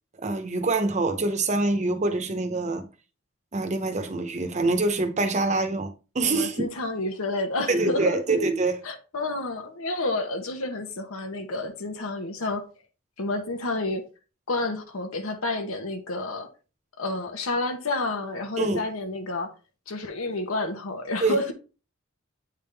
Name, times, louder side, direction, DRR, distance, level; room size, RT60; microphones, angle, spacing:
voice 1, 0.2-2.9 3.5-6.7 7.7-8.8 18.6-18.8 21.2-21.5, right 3 dB, 35° right, 0.8 m, -25 dB
voice 2, 6.3-8.2 8.8-12.6 13.2-14.0 14.5-16.5 17.0-19.5 19.9-21.5, left 2 dB, 85° left, 0.9 m, -29 dB
8.5 x 3.6 x 3.3 m
head